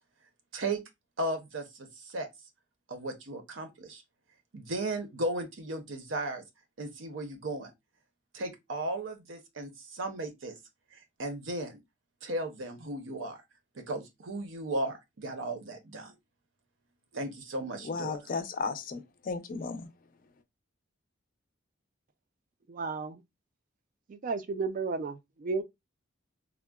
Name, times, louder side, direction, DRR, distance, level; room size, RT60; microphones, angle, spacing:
voice 1, 1.2-2.3 2.9-4.0 4.5-6.4 6.8-7.7 8.3-10.5 10.9-11.8 12.2-13.4 13.7-16.1 17.1-18.2, right 1 dB, 70° right, 0.7 m, -35 dB
voice 2, 17.9-19.9, left 4 dB, 45° left, 0.4 m, -34 dB
voice 3, 22.7-23.2 24.1-25.6, right 4 dB, 40° right, 0.3 m, -33 dB
3.6 x 2.1 x 2.2 m
head